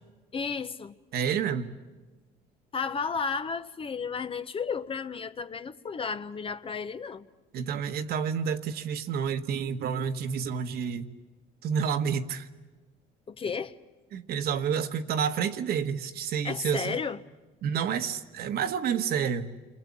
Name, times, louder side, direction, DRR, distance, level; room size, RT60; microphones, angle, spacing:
voice 1, 0.3-1.0 2.7-7.3 13.3-13.8 16.4-17.2, left 5 dB, 30° left, 0.9 m, -33 dB
voice 2, 1.1-1.7 7.5-11.1 11.6-12.5 14.1-17.0 17.6-19.5, right 7 dB, 70° right, 1.4 m, -29 dB
29.0 x 22.5 x 8.6 m
cardioid pair, 110°, 17 cm